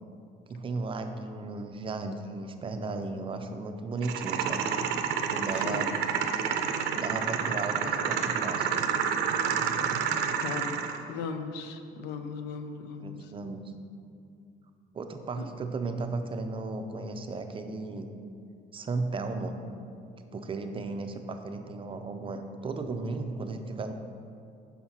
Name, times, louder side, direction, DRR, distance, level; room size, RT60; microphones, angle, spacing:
voice 1, 0.5-4.7 5.3-5.9 6.9-8.7 13.0-13.7 14.9-18.1 18.7-19.6 20.2-23.9, right 3 dB, 30° right, 7 dB, 0.5 m, -35 dB
sound 1, 4.0-11.0, right 7 dB, 80° right, 0.5 m, -29 dB
voice 2, 5.5-5.9 10.4-10.8 11.1-13.2 15.4-15.5, left 5 dB, 90° left, 7 dB, 0.6 m, -37 dB
5.7 x 4.4 x 5.6 m, 2.4 s
cardioid pair, 110°, 17 cm